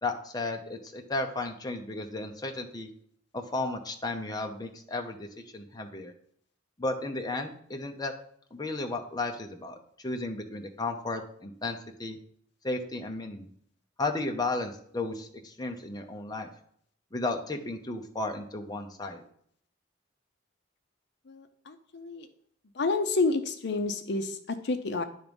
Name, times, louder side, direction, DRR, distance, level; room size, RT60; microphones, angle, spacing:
voice 1, 0.0-2.9 3.3-5.3 5.5-6.1 6.8-8.1 8.5-9.8 10.0-12.2 12.6-13.5 14.0-16.5 17.1-19.2, left 2 dB, 20° left, 4 dB, 0.7 m, -34 dB
voice 2, 21.3-22.3 22.7-25.0, left 3 dB, 60° left, 8 dB, 0.6 m, -29 dB
10.5 x 3.5 x 5.2 m, 0.65 s
head